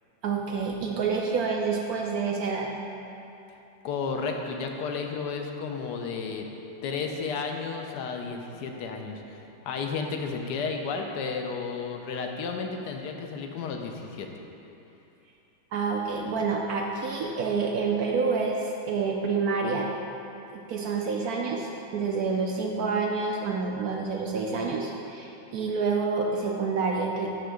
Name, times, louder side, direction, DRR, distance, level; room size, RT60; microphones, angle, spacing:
voice 1, 0.2-2.7 15.7-19.9 20.7-27.3, right 4 dB, 75° right, 0 dB, 0.8 m, -28 dB
voice 2, 3.8-6.5 6.8-14.3, left 5 dB, 70° left, 3 dB, 1.1 m, -32 dB
10.0 x 3.4 x 6.3 m, 2.9 s
omnidirectional pair, 2.2 m